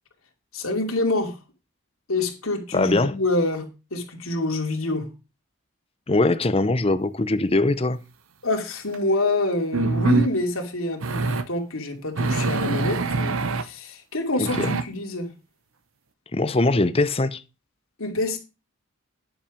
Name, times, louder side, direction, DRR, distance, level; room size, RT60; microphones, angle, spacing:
voice 1, 0.5-1.4 2.1-5.1 8.4-15.3 18.0-18.4, left 2 dB, 80° left, 2.7 m, -26 dB
voice 2, 2.7-3.1 6.1-8.0 14.4-14.7 16.3-17.4, left 2 dB, 25° left, 0.7 m, -21 dB
sound 1, 8.9-9.0 9.7-10.3 11.0-11.5 12.2-13.6 14.4-14.8, right 3 dB, 75° right, 0.8 m, -24 dB
10.5 x 7.2 x 5.1 m
head